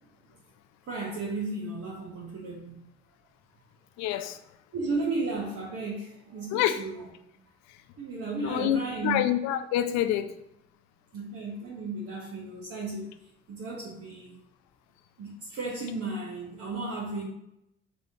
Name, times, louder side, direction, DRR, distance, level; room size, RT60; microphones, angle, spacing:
voice 1, 0.9-2.8 4.7-7.1 8.0-9.2 11.1-13.1 13.5-14.4 15.2-17.3, right 3 dB, 50° right, -4 dB, 1.0 m, -34 dB
voice 2, 4.0-4.4 6.5-6.9 7.7-7.8 8.4-10.3, left 11 dB, 65° left, 10 dB, 0.5 m, -27 dB
4.1 x 3.5 x 2.8 m, 0.82 s
hypercardioid pair, 45°, 30 cm